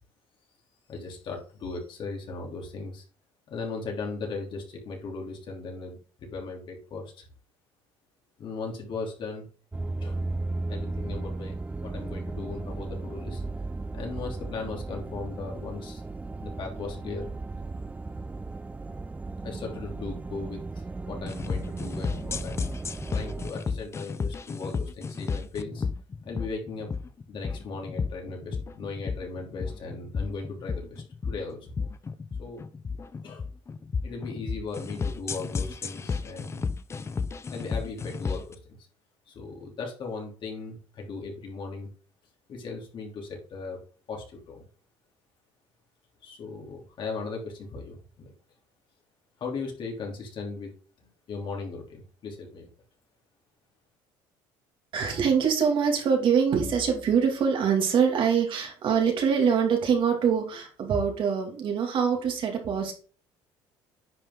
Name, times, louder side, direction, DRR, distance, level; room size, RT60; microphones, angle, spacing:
voice 1, 0.9-3.0 3.5-7.3 8.4-9.5 10.0-10.2 10.7-11.5 11.8-13.4 13.9-16.0 16.4-17.3 19.4-20.6 21.0-22.7 23.1-25.8 26.2-26.9 27.3-31.7 32.4-32.6 33.2-33.4 34.0-36.7 37.5-38.6 39.3-41.9 42.5-43.8 44.1-44.6 46.2-48.3 49.4-50.7 51.0-52.7, left 4 dB, 50° left, 0 dB, 3.3 m, -37 dB
sound 1, 9.7-23.5, right 2 dB, 15° right, 0.5 m, -35 dB
sound 2, 21.3-38.5, left 5 dB, 25° left, 0.7 m, -33 dB
voice 2, 54.9-62.9, right 6 dB, 55° right, 2 dB, 2.4 m, -24 dB
9.9 x 5.5 x 3.8 m, 0.40 s
cardioid pair, 100°, 10 cm